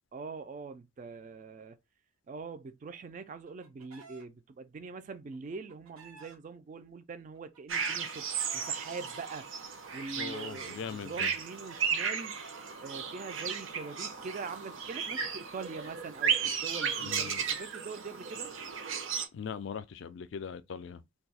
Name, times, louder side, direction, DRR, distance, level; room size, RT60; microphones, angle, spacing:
voice 1, 0.1-1.8 2.3-9.5 9.9-12.4 12.8-18.5, right 4 dB, 35° right, 0.3 m, -43 dB
Chicken rooster, 3.1-4.2 5.3-6.4 7.3-8.8 9.6-10.7 11.7-12.8 13.9-17.2, right 5 dB, 90° right, 1.1 m, -55 dB
sound 1, 7.7-19.3, right 6 dB, 70° right, 0.7 m, -35 dB
voice 2, 10.2-11.3 17.0-17.4 19.3-21.0, left 6 dB, 60° left, 0.3 m, -40 dB
2.6 x 2.3 x 4.0 m
head